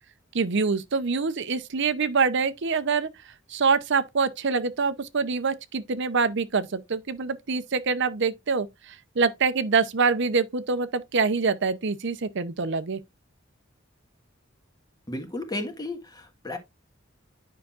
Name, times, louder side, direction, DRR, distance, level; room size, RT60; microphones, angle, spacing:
voice 1, 0.3-3.1 3.5-13.0, right 4 dB, 65° right, 0.7 m, -25 dB
voice 2, 15.1-16.6, left 2 dB, 20° left, 1.6 m, -33 dB
9.6 x 5.7 x 2.4 m
head